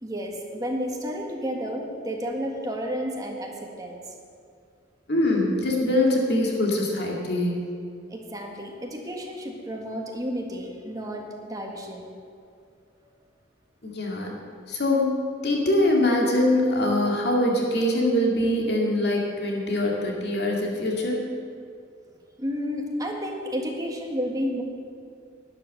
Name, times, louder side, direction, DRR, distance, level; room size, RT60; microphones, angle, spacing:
voice 1, 0.0-4.0 8.1-12.1 13.0-13.1 22.4-24.6, equal, 20° right, 0 dB, 1.6 m, -31 dB
voice 2, 5.1-7.7 13.8-14.3 14.7-15.1 15.4-21.2, left 1 dB, 60° left, -1 dB, 2.1 m, -23 dB
12.0 x 10.5 x 6.6 m, 2.4 s
head